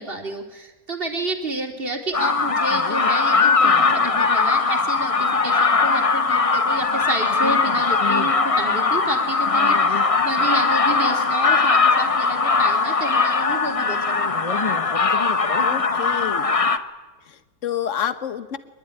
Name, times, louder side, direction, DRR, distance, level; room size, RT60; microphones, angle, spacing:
voice 1, 0.0-14.4, right 2 dB, 30° right, 3 dB, 3.2 m, -30 dB
sound 1, 2.1-16.8, left 4 dB, 30° left, 0.7 m, -20 dB
voice 2, 15.6-16.5 17.3-18.6, left 9 dB, 45° left, 11 dB, 1.5 m, -28 dB
24.0 x 21.0 x 10.0 m, 1.2 s
omnidirectional pair, 1.9 m